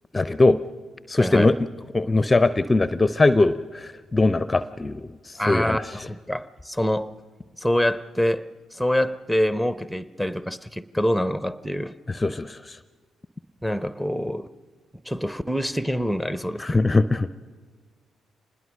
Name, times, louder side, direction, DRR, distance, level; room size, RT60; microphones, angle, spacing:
voice 1, 0.1-0.6 1.1-1.6 1.9-5.9 12.1-12.8 16.6-17.3, left 2 dB, 25° left, 0.6 m, -21 dB
voice 2, 1.2-1.6 5.4-7.1 7.6-8.4 8.7-11.9 13.6-14.5 15.0-16.8, equal, ahead, 0.9 m, -25 dB
25.5 x 20.5 x 6.3 m
hypercardioid pair, 40°, 0 cm